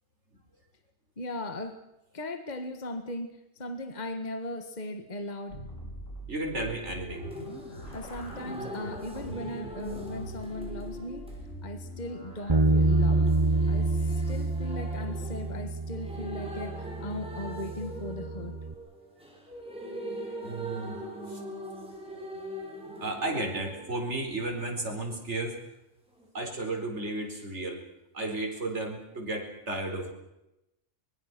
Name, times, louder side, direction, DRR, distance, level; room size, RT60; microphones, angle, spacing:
voice 1, 1.2-1.8 2.1-5.7 7.9-11.3 11.6-13.3 13.7-18.6, left 1 dB, 35° left, 8 dB, 1.8 m, -38 dB
sound 1, 5.5-12.6, right 1 dB, 85° left, 6.7 m, -43 dB
voice 2, 6.3-7.2 20.4-21.0 21.3-21.4 23.0-25.6 26.3-27.8 28.1-30.1, right 2 dB, 60° right, 2 dB, 4.9 m, -33 dB
sound 2, 7.1-24.9 26.2-26.3, equal, 5° right, 5.5 m, -42 dB
Bass guitar, 12.5-18.7, right 2 dB, 25° right, 0.9 m, -27 dB
24.5 x 22.0 x 6.1 m, 0.89 s
omnidirectional pair, 1.3 m